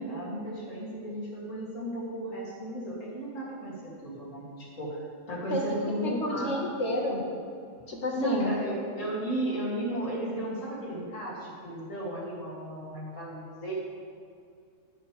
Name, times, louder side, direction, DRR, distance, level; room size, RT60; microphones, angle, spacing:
voice 1, 0.0-3.7 4.0-5.0 5.3-6.5 8.2-13.7, right 1 dB, 80° left, -6 dB, 3.2 m, -34 dB
voice 2, 6.0-7.2 7.9-8.6, left 1 dB, 60° left, -1 dB, 1.9 m, -30 dB
17.0 x 7.1 x 3.4 m, 2.3 s
omnidirectional pair, 1.3 m